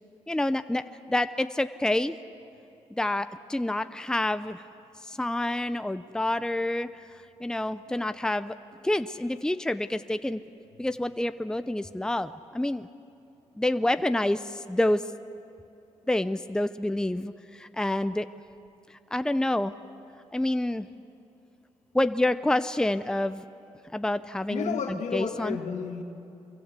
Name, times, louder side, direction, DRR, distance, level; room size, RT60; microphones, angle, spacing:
voice 1, 0.3-2.2 2.9-4.6 5.0-6.9 7.4-8.6 8.8-10.4 10.8-12.9 13.6-15.0 16.1-18.3 19.1-19.7 20.3-20.9 21.9-23.4 23.9-25.6, left 1 dB, 5° left, 11 dB, 0.7 m, -28 dB
voice 2, 24.5-26.0, left 6 dB, 85° left, 4 dB, 1.9 m, -32 dB
27.0 x 23.5 x 8.3 m, 2.8 s
cardioid pair, 75°, 12 cm